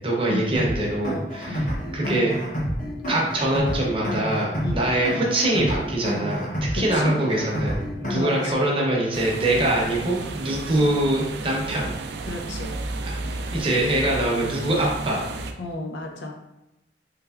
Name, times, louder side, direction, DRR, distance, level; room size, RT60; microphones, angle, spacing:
voice 1, 0.0-2.3 3.1-11.9 13.0-13.1 13.5-15.2, right 1 dB, 30° right, -3 dB, 0.8 m, -24 dB
sound 1, 0.5-8.5, equal, 45° left, 0.8 m, -29 dB
voice 2, 6.7-7.2 8.1-8.7 12.3-12.7 15.6-16.3, left 2 dB, 80° left, 2 dB, 0.5 m, -32 dB
sound 2, 9.1-15.5, right 2 dB, 65° right, 0.3 m, -33 dB
3.3 x 3.3 x 2.3 m, 0.90 s
head